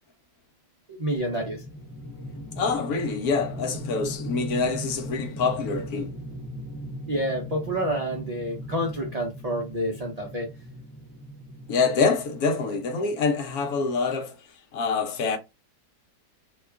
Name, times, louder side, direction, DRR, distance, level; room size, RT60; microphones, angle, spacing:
voice 1, 0.9-1.6 7.1-10.5, right 1 dB, 80° right, 0.3 m, -28 dB
sound 1, 1.2-13.4, equal, 20° left, 0.5 m, -38 dB
voice 2, 2.6-6.1 11.7-14.4 14.7-15.4, left 4 dB, 70° left, 1.2 m, -26 dB
2.9 x 2.3 x 3.4 m
omnidirectional pair, 1.8 m